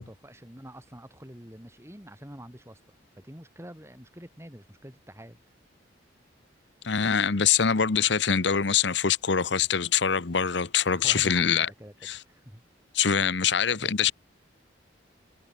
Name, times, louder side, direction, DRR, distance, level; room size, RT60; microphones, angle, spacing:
voice 1, 0.0-2.8 3.1-5.5 10.9-12.6 13.4-13.9, equal, 15° right, 4.3 m, -46 dB
voice 2, 6.8-11.7 12.0-12.2 12.9-14.1, left 7 dB, 70° left, 0.9 m, -24 dB
head